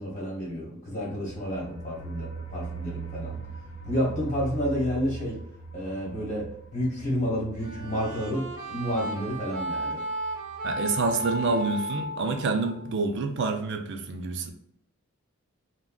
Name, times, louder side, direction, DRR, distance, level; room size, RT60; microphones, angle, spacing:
voice 1, 0.0-3.4 3.8-5.3 5.7-6.5 6.7-10.0, equal, 35° left, -5 dB, 1.2 m, -30 dB
sound 1, 1.0-11.6 12.0-12.1 12.4-12.5, right 5 dB, 65° left, 0.6 m, -41 dB
sound 2, 7.6-13.1, equal, 80° right, 0.8 m, -34 dB
voice 2, 10.6-14.5, right 3 dB, 60° right, 5 dB, 0.4 m, -27 dB
3.6 x 2.2 x 2.3 m, 0.74 s
head